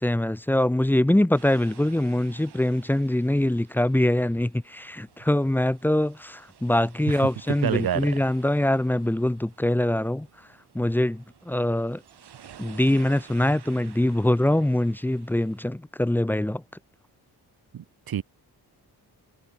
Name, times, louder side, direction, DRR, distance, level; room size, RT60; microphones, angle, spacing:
voice 1, 0.0-10.3 10.7-12.0 12.6-16.6, left 1 dB, 5° left, 0.7 m, -23 dB
sound 1, 1.3-15.7, right 9 dB, 80° right, 6.6 m, -52 dB
voice 2, 7.5-8.1 17.7-18.2, right 10 dB, 65° right, 1.3 m, -28 dB
wide cardioid pair, 150°, 39 cm